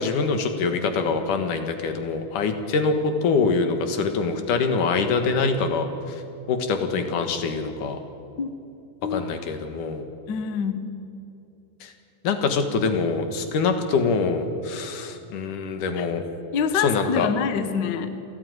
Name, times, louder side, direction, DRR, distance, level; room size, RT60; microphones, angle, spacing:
voice 1, 0.0-5.9 6.5-8.0 9.1-10.0 11.8-11.9 12.2-16.2 16.7-17.3, left 4 dB, 70° left, 7 dB, 3.0 m, -24 dB
voice 2, 10.3-10.8 16.0-16.1 16.5-18.1, left 6 dB, 85° left, 10 dB, 0.9 m, -25 dB
29.0 x 11.5 x 9.4 m, 2.7 s
omnidirectional pair, 3.9 m